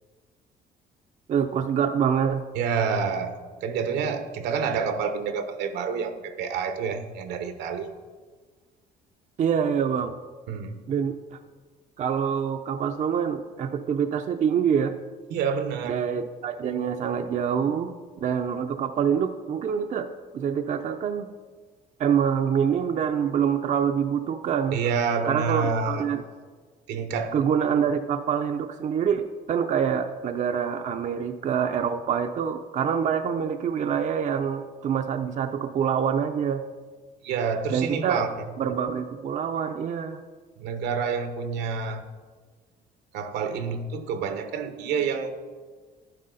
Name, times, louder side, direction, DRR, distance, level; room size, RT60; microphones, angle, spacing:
voice 1, 1.3-2.4 9.4-10.1 10.9-11.4 12.0-15.0 15.8-20.1 20.3-21.3 22.0-24.8 25.2-26.2 27.3-36.6 37.7-38.2 38.6-40.2, right 7 dB, 45° right, 7 dB, 0.6 m, -26 dB
voice 2, 2.5-7.9 10.5-10.8 15.3-16.0 24.7-26.0 26.9-27.3 37.2-38.3 40.6-42.1 43.1-45.4, right 6 dB, 80° right, 8 dB, 1.1 m, -28 dB
11.0 x 9.7 x 3.9 m, 1.5 s
cardioid pair, 110°, 17 cm